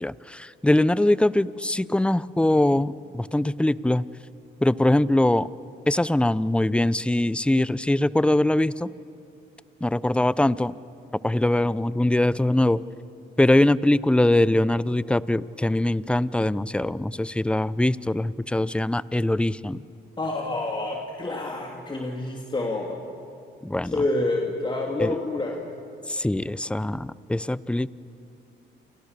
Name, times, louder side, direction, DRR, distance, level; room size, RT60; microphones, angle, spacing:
voice 1, 0.0-4.0 4.6-5.5 5.9-8.9 9.8-10.7 11.2-12.8 13.4-19.8 23.6-23.9 25.0-25.2 26.1-27.9, left 1 dB, 5° left, 18 dB, 0.6 m, -22 dB
voice 2, 20.2-23.0 23.8-25.6, left 2 dB, 25° left, 0 dB, 3.0 m, -28 dB
29.5 x 29.0 x 6.8 m, 2.5 s
cardioid pair, 90°, 20 cm